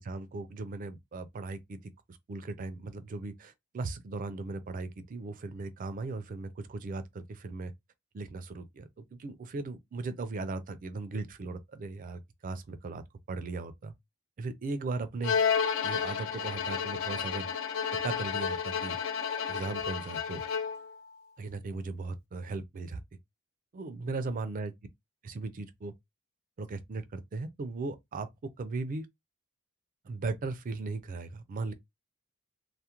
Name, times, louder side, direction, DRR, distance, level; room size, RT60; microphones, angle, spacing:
voice 1, 0.0-7.7 8.1-13.0 13.3-13.9 14.4-15.3 15.8-17.5 18.0-19.0 19.5-20.4 21.4-23.0 23.7-24.7 25.2-25.9 26.6-28.3 28.6-29.1 30.0-31.7, right 3 dB, 40° right, 0.3 m, -37 dB
Bowed string instrument, 15.2-20.9, left 7 dB, 60° left, 0.3 m, -31 dB
2.3 x 2.0 x 2.8 m
head